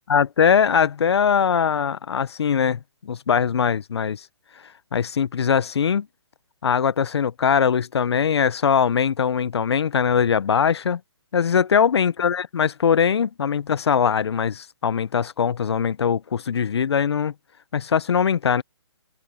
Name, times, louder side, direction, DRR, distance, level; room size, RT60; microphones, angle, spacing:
voice 1, 0.1-4.2 4.9-6.1 6.6-11.0 11.3-17.3 17.7-18.6, left 7 dB, 65° left, 1.0 m, -21 dB
hypercardioid pair, 150°, 15 cm